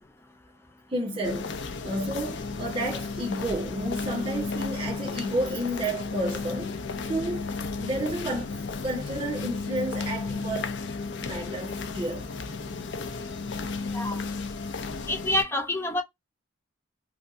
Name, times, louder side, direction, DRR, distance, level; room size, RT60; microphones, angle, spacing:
voice 1, 0.9-1.5 1.8-6.8 7.1-7.5 7.8-10.8 11.2-12.2, right 1 dB, 25° right, 1.3 m, -31 dB
sound 1, 1.2-15.4, left 4 dB, 65° left, 0.5 m, -33 dB
voice 2, 15.1-16.0, left 1 dB, 10° left, 0.5 m, -27 dB
3.3 x 2.6 x 2.6 m
head